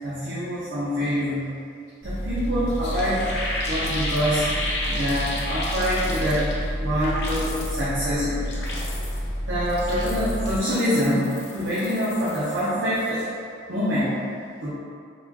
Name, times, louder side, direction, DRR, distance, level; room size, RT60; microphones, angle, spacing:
voice 1, 0.0-1.5 2.0-3.3 3.6-4.5 4.9-6.5 6.8-8.5 9.5-13.2 13.7-14.2 14.6-14.7, equal, 75° right, -11 dB, 0.8 m, -25 dB
sound 1, 2.0-10.6, equal, 10° left, 0.4 m, -30 dB
sound 2, 2.4-2.5 2.7-6.7 7.0-7.8 8.3-9.3 9.7-12.7 12.9-13.3, left 2 dB, 65° left, 0.7 m, -33 dB
4.1 x 2.3 x 2.9 m, 2.3 s
head